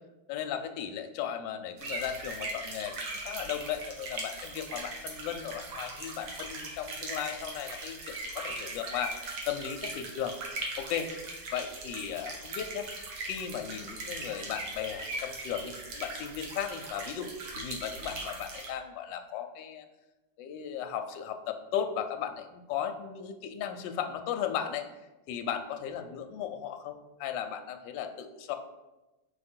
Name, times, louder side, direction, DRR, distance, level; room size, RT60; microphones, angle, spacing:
voice 1, 0.3-2.9 3.2-9.1 9.5-10.4 10.8-11.1 11.5-12.9 13.2-19.9 20.4-24.9 25.3-28.6, left 9 dB, 75° left, 6 dB, 1.2 m, -36 dB
sound 1, 1.8-18.7, right 2 dB, 75° right, 1.9 m, -40 dB
5.0 x 4.7 x 4.3 m, 1.1 s
omnidirectional pair, 2.2 m